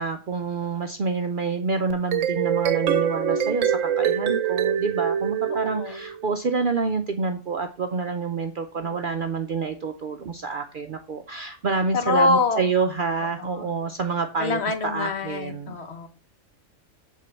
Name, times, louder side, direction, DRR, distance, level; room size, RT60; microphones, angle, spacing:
voice 1, 0.0-15.8, right 4 dB, 55° right, 6 dB, 0.6 m, -28 dB
sound 1, 1.9-6.3, right 8 dB, 70° right, 1.0 m, -24 dB
voice 2, 5.6-6.0 11.9-12.6 13.4-13.7 14.4-16.1, left 3 dB, 55° left, 7 dB, 1.3 m, -25 dB
8.3 x 3.7 x 6.8 m, 0.38 s
omnidirectional pair, 1.4 m